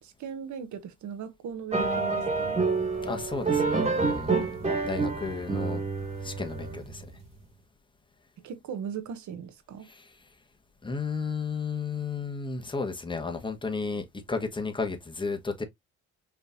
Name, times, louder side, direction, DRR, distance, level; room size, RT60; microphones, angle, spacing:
voice 1, 0.0-2.6 8.4-9.9, right 7 dB, 70° right, 1.1 m, -38 dB
sound 1, 1.7-7.0, right 4 dB, 20° right, 2.0 m, -28 dB
voice 2, 3.0-5.8 6.2-7.0 9.9-10.1 10.8-15.6, left 4 dB, 15° left, 1.4 m, -33 dB
5.1 x 3.3 x 2.6 m
cardioid pair, 90°, 30 cm